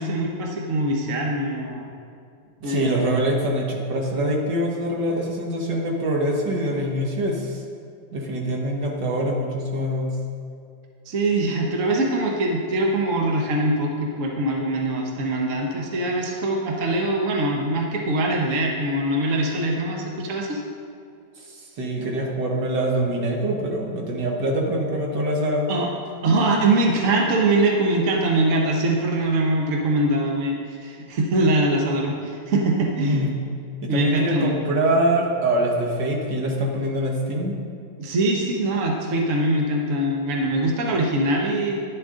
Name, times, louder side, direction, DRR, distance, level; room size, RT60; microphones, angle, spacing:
voice 1, 0.0-1.9 2.6-3.2 11.1-20.6 25.7-25.9 26.2-33.3 33.9-34.6 38.0-41.8, right 2 dB, 45° right, 0 dB, 1.3 m, -23 dB
voice 2, 2.6-7.6 8.1-10.2 21.8-25.7 33.0-33.3 33.8-37.6, right 1 dB, 65° right, 0 dB, 1.9 m, -24 dB
11.0 x 10.5 x 3.8 m, 2.3 s
omnidirectional pair, 2.1 m